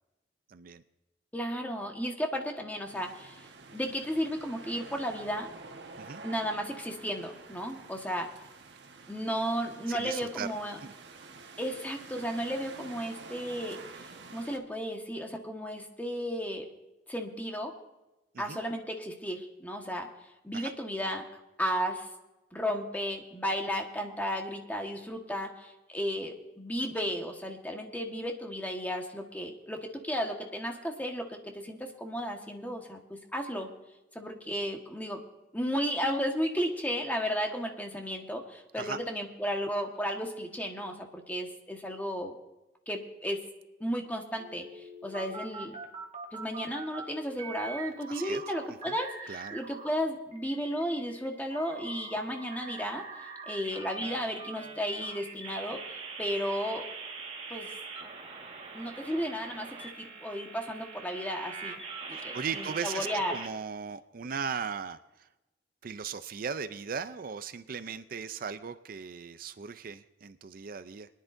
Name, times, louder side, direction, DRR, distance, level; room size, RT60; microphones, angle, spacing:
voice 1, 0.5-0.8 6.0-6.2 9.9-10.5 10.8-10.9 18.3-18.6 20.5-20.7 38.8-39.0 48.1-48.4 48.9-49.0 49.3-49.6 62.1-65.3 65.8-71.1, right 6 dB, 55° right, 12 dB, 0.5 m, -38 dB
voice 2, 1.3-5.5 6.2-8.3 9.1-10.8 11.6-13.8 14.3-16.7 17.1-17.7 18.4-20.1 20.4-21.2 21.6-22.1 22.5-33.7 34.1-35.2 35.5-42.3 42.9-43.4 43.8-45.8 46.3-55.8 56.2-56.9 57.5-57.7 58.7-61.7 62.1-63.4, equal, 10° left, 2 dB, 1.4 m, -34 dB
sound 1, 2.8-14.6, right 3 dB, 80° right, 1.2 m, -49 dB
sound 2, 44.4-47.0 47.4-49.9 50.3-63.5, right 4 dB, 35° right, 1.6 m, -43 dB
23.5 x 10.5 x 2.6 m, 1.0 s
head